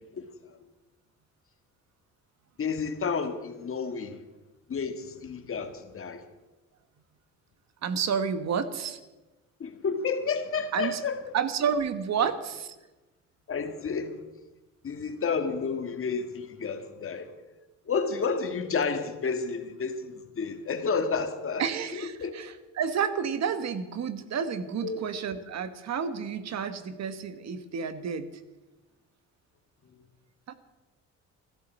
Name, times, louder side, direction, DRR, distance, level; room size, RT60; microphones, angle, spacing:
voice 1, 2.6-4.2 4.7-6.3 9.6-11.3 12.2-12.3 13.5-14.2 14.8-17.3 17.9-21.7 21.9-22.3 24.8-25.0, left 5 dB, 45° left, 1.7 m, -31 dB
voice 2, 7.8-9.0 10.7-11.0 11.3-12.7 21.6-28.3 30.5-30.6, right 7 dB, 60° right, 1.3 m, -30 dB
14.0 x 12.5 x 7.3 m
cardioid pair, 90°, 30 cm